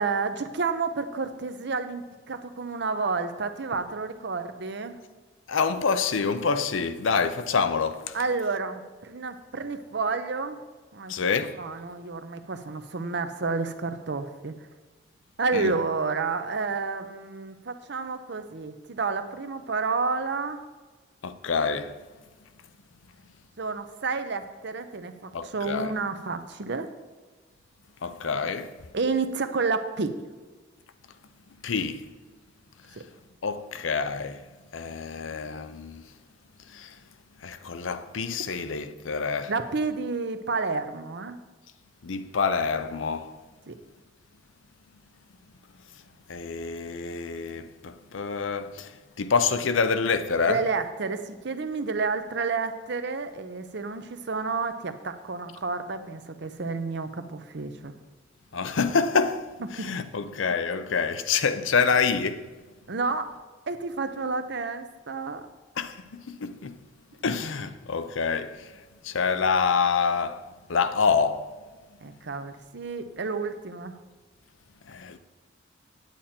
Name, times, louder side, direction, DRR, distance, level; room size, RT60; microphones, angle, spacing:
voice 1, 0.0-5.0 8.1-10.6 10.9-11.1 11.6-14.5 15.4-20.6 23.6-26.9 28.9-30.1 33.0-33.1 39.5-41.4 43.7-43.8 50.5-58.0 59.8-59.9 62.9-63.3 63.7-65.5 72.0-73.9, right 4 dB, 60° right, 0.7 m, -30 dB
voice 2, 5.5-8.2 11.1-11.5 15.5-15.7 21.2-22.0 25.3-25.9 28.0-28.7 31.6-32.0 33.4-34.4 34.7-36.0 36.7-36.9 37.4-39.5 42.0-43.3 46.3-48.9 49.2-50.6 58.5-62.5 65.8-66.8 67.2-68.7 69.0-70.4 70.7-71.4 74.9-75.2, left 5 dB, 90° left, 0.6 m, -27 dB
9.1 x 8.9 x 4.3 m
head